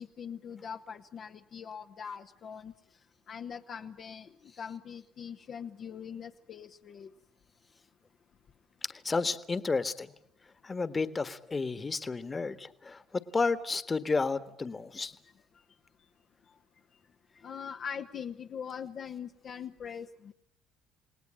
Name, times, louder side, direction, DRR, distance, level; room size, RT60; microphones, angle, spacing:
voice 1, 0.0-2.7 3.3-4.3 4.6-7.1 17.4-20.3, left 7 dB, 55° left, 3 dB, 1.1 m, -42 dB
voice 2, 9.0-10.1 10.6-13.0 13.3-15.1, left 4 dB, 25° left, 11 dB, 1.6 m, -31 dB
29.0 x 18.5 x 9.0 m, 0.77 s
supercardioid pair, 75°, 0 cm